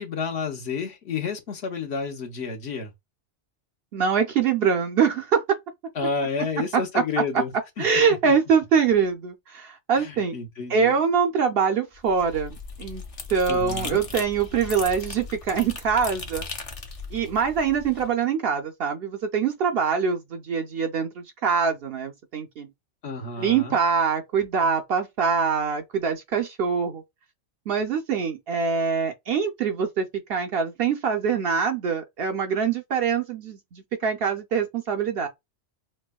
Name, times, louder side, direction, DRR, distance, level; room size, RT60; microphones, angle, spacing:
voice 1, 0.0-2.9 5.9-7.9 8.2-8.3 10.0-11.0 13.5-14.0 23.0-23.8, left 5 dB, 65° left, 1.1 m, -30 dB
voice 2, 3.9-5.6 6.4-7.0 7.8-10.4 10.7-13.0 13.3-16.5 17.1-22.7 23.4-27.0 27.7-35.3, right 6 dB, 60° right, 0.7 m, -24 dB
sound 1, 11.9-18.1, left 4 dB, 40° left, 0.6 m, -38 dB
4.4 x 2.1 x 2.3 m
omnidirectional pair, 1.2 m